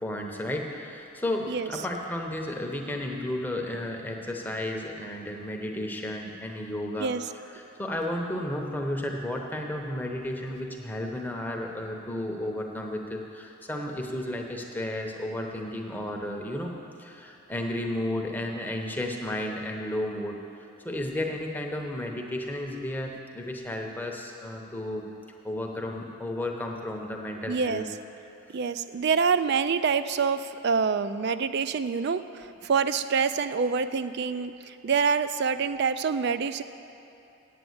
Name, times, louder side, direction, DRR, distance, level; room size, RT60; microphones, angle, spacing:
voice 1, 0.0-7.1 7.5-20.4 20.8-25.0 25.4-27.8, left 1 dB, 10° left, 1 dB, 0.7 m, -33 dB
voice 2, 27.5-27.8 28.5-36.6, right 5 dB, 50° right, 12 dB, 0.3 m, -26 dB
8.7 x 8.4 x 7.9 m, 2.8 s
head